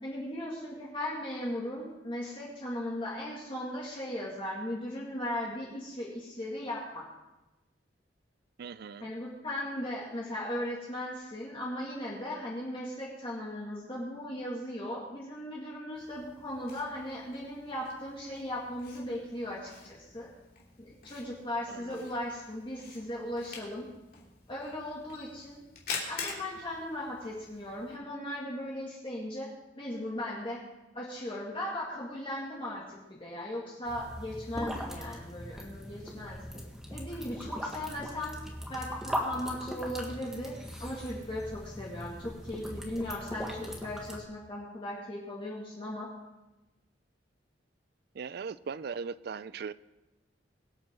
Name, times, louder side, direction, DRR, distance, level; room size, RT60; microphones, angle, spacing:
voice 1, 0.0-7.1 9.0-20.3 20.8-23.9 24.5-25.6 26.1-29.5 29.8-30.6 30.9-36.4 36.9-38.4 38.7-40.5 40.8-46.1, left 1 dB, 30° left, -5 dB, 2.3 m, -37 dB
voice 2, 8.6-9.1 21.7-22.0 48.1-49.7, right 5 dB, 60° right, 17 dB, 0.4 m, -39 dB
Camera, 15.9-27.9, left 5 dB, 55° left, 3.1 m, -46 dB
sound 1, 33.8-44.2, equal, 5° right, 1.7 m, -40 dB
23.0 x 8.8 x 3.8 m, 1.0 s
head